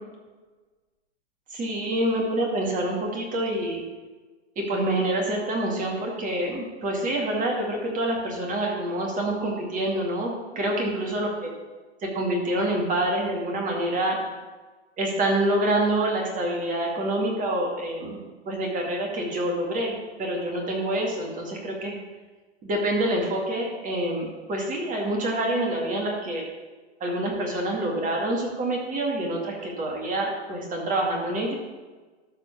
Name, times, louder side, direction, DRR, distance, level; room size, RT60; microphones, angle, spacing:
voice 1, 1.5-3.8 4.6-11.3 12.0-14.2 15.0-18.2 18.5-22.0 22.6-26.4 27.0-31.5, right 1 dB, 25° right, 0 dB, 2.2 m, -27 dB
12.5 x 4.5 x 6.9 m, 1.3 s
hypercardioid pair, 115°, 34 cm